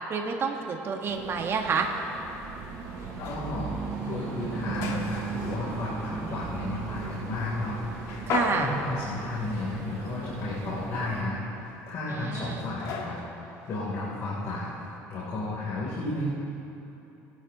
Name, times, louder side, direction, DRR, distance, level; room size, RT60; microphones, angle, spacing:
voice 1, 0.1-1.9 8.3-8.7 12.1-12.6, right 5 dB, 40° right, 2 dB, 1.5 m, -29 dB
sound 1, 1.0-11.2, right 6 dB, 60° right, 2.9 m, -37 dB
sound 2, 1.2-15.0, left 5 dB, 75° left, 1.5 m, -40 dB
voice 2, 3.2-3.7 4.0-13.2 13.7-14.8 15.1-16.3, left 2 dB, 55° left, -7 dB, 3.3 m, -33 dB
21.0 x 11.0 x 3.0 m, 3.0 s
supercardioid pair, 100°, 6 cm